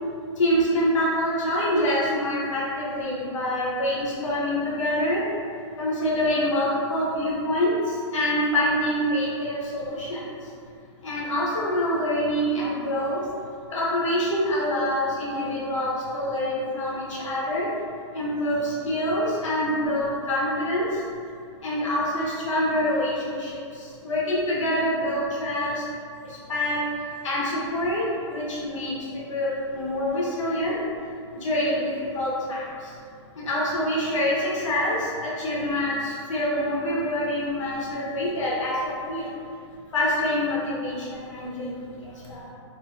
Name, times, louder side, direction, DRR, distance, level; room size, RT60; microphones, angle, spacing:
voice 1, 0.4-5.2 5.8-7.7 8.1-10.2 11.0-13.2 13.7-17.7 18.1-20.9 21.6-23.5 24.0-25.8 26.5-26.8 27.2-30.8 31.4-31.8 32.1-32.6 33.4-39.2 39.9-42.5, left 1 dB, 90° left, -6 dB, 1.0 m, -26 dB
2.7 x 2.6 x 2.4 m, 2.4 s
hypercardioid pair, 170°, 16 cm